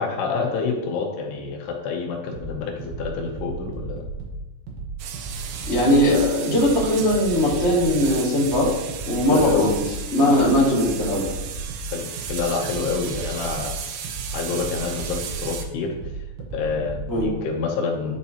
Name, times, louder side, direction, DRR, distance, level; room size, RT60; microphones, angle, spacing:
voice 1, 0.0-4.0 9.3-9.7 11.9-13.7 14.3-15.9 16.5-18.2, left 4 dB, 75° left, 1 dB, 2.8 m, -27 dB
sound 1, 2.3-17.3, right 3 dB, 65° right, 2.5 m, -35 dB
sound 2, 5.0-15.6, right 8 dB, 85° right, 2.1 m, -35 dB
voice 2, 5.7-8.7 9.1-9.8 10.1-11.2 17.1-17.3, left 1 dB, 40° left, -5 dB, 0.9 m, -19 dB
10.5 x 5.2 x 2.9 m, 1.0 s
omnidirectional pair, 5.0 m